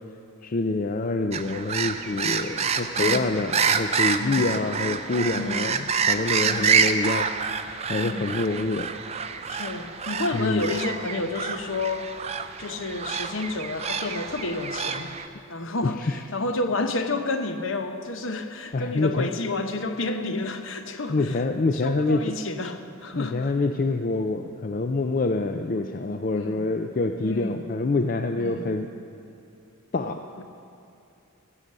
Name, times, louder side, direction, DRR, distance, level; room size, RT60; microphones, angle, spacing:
voice 1, 0.4-7.3 7.9-8.9 10.3-10.7 15.6-16.2 18.7-19.3 21.1-22.2 23.1-28.9 29.9-30.4, left 3 dB, 40° left, 6 dB, 0.4 m, -26 dB
sound 1, 1.3-15.3, right 6 dB, 30° right, 0.5 m, -27 dB
voice 2, 2.9-3.4 4.2-4.6 5.3-5.8 6.4-6.8 8.0-8.3 9.5-12.1 12.6-15.1 15.5-21.4 21.7-23.5 26.3-26.7 27.2-27.6 28.4-28.7 30.4-30.5, left 2 dB, 60° left, 8 dB, 0.9 m, -30 dB
15.5 x 8.1 x 7.5 m, 2.7 s
head